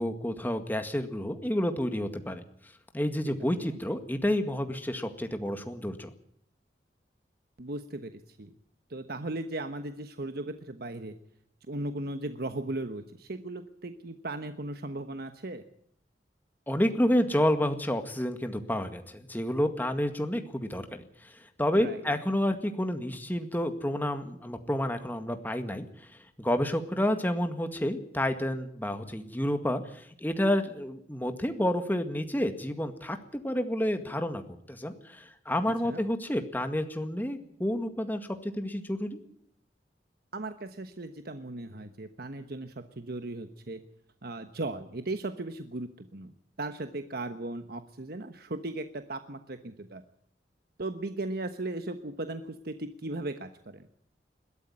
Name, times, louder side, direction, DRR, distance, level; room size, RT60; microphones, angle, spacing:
voice 1, 0.0-2.4 2.9-6.1 16.7-26.1 26.4-34.4 34.7-39.2, left 1 dB, 10° left, 7 dB, 1.9 m, -30 dB
voice 2, 7.6-8.5 8.9-11.1 11.7-15.6 21.8-22.0 35.8-36.0 40.3-43.8 44.2-46.3 46.6-50.0 50.8-53.9, right 2 dB, 60° right, 9 dB, 1.2 m, -37 dB
21.5 x 13.0 x 9.7 m, 0.67 s
head